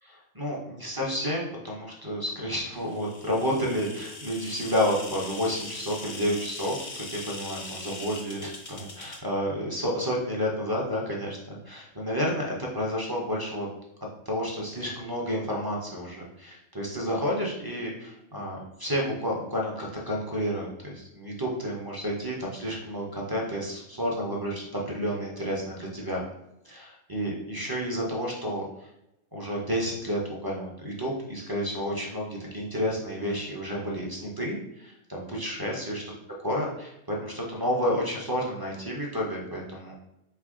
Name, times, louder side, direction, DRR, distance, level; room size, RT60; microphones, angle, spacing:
voice 1, 0.0-13.7 14.3-26.2 26.6-28.6 29.3-36.0 36.4-39.9, equal, 25° right, -3 dB, 0.5 m, -30 dB
sound 1, 2.8-9.2, left 3 dB, 45° left, 0.4 m, -41 dB
3.8 x 3.3 x 3.6 m, 0.86 s
omnidirectional pair, 1.5 m